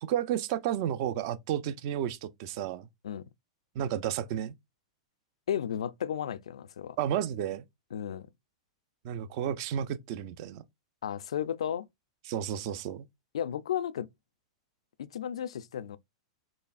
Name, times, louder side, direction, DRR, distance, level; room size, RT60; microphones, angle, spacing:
voice 1, 0.0-2.9 3.8-4.5 7.0-7.6 9.0-10.6 12.3-13.1, right 10 dB, 55° right, 0.5 m, -32 dB
voice 2, 5.5-7.0 7.9-8.3 11.0-11.9 13.3-14.1 15.0-16.0, left 9 dB, 85° left, 0.3 m, -33 dB
4.1 x 3.3 x 2.4 m
hypercardioid pair, 120°, 3 cm